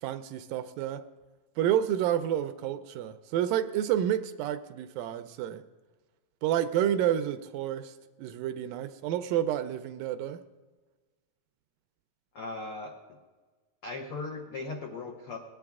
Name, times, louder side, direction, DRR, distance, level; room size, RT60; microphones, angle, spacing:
voice 1, 0.0-1.0 1.6-5.6 6.4-7.9 8.2-10.4, right 11 dB, 80° right, 11 dB, 2.1 m, -29 dB
voice 2, 12.3-12.9 13.8-15.5, left 3 dB, 85° left, 1 dB, 1.2 m, -38 dB
19.0 x 10.5 x 3.6 m, 1.3 s
omnidirectional pair, 4.2 m